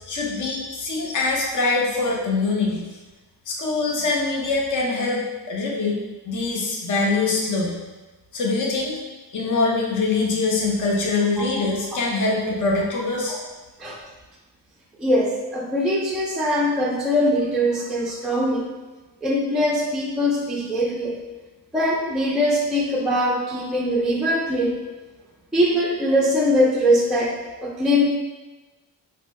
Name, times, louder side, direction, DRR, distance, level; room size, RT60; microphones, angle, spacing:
voice 1, 0.1-2.9 3.5-6.0 6.2-7.8 8.3-9.0 9.3-13.4, left 3 dB, 45° left, -2 dB, 0.6 m, -23 dB
voice 2, 15.0-18.7 19.2-21.2 21.7-24.7 25.5-27.3 27.6-28.0, equal, ahead, -3 dB, 0.3 m, -21 dB
4.2 x 2.6 x 2.2 m, 1.2 s
wide cardioid pair, 140°, 44 cm